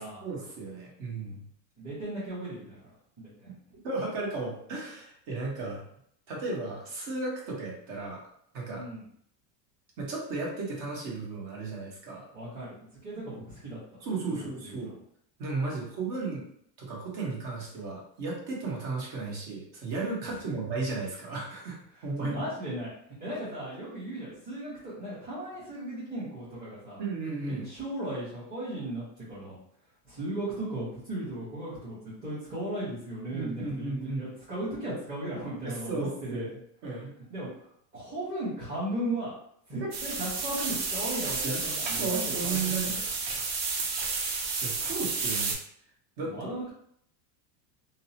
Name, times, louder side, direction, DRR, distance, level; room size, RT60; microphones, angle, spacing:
voice 1, 0.0-1.4 3.8-5.8 6.3-8.2 8.5-8.9 10.0-12.3 14.0-14.9 15.4-16.4 16.8-21.8 22.0-22.5 27.0-27.7 33.3-34.3 35.6-36.5 36.8-37.1 39.8-39.9 41.4-41.6 42.0-42.9 44.6-45.5 46.2-46.5, right 3 dB, 50° right, -3 dB, 1.1 m, -34 dB
voice 2, 1.8-2.9 3.2-3.5 8.7-9.0 12.3-12.8 13.0-13.8 14.3-14.9 20.3-20.5 21.9-22.9 23.2-27.0 27.5-29.5 30.0-36.5 37.3-37.6 37.9-39.3 39.7-43.1 46.2-46.7, right 1 dB, 20° right, -11 dB, 1.0 m, -36 dB
sound 1, 39.9-45.5, right 4 dB, 80° right, 0.8 m, -31 dB
2.7 x 2.0 x 2.8 m, 0.68 s
supercardioid pair, 145°, 50 cm